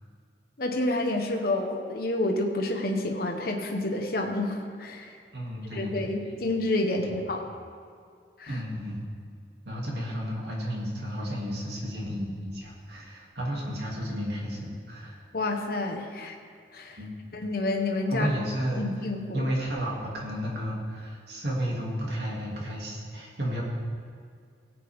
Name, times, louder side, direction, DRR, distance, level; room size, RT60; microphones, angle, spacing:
voice 1, 0.6-5.1 5.7-7.4 8.4-8.6 15.3-16.3 16.7-17.0 17.3-18.3 18.8-19.5, left 2 dB, 55° left, 2 dB, 1.1 m, -29 dB
voice 2, 5.3-6.1 7.0-7.2 8.5-9.0 9.6-15.2 17.0-17.1 18.1-18.9 19.3-23.6, equal, 70° right, -3 dB, 2.6 m, -32 dB
17.5 x 8.6 x 3.6 m, 2.2 s
head